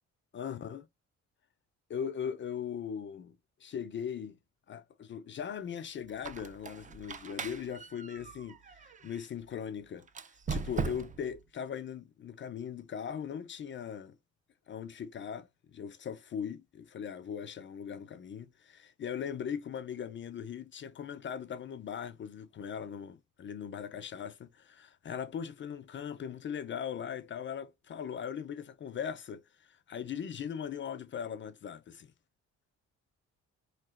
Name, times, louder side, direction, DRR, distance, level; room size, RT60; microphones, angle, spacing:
voice 1, 0.3-0.9 1.9-3.3 3.6-4.4 4.7-10.1 10.5-14.2 14.7-32.1, left 8 dB, 40° left, 0.4 m, -39 dB
Squeak, 6.1-9.3 10.1-11.4, right 5 dB, 25° right, 0.4 m, -39 dB
3.2 x 2.8 x 2.4 m
cardioid pair, 90°, 30 cm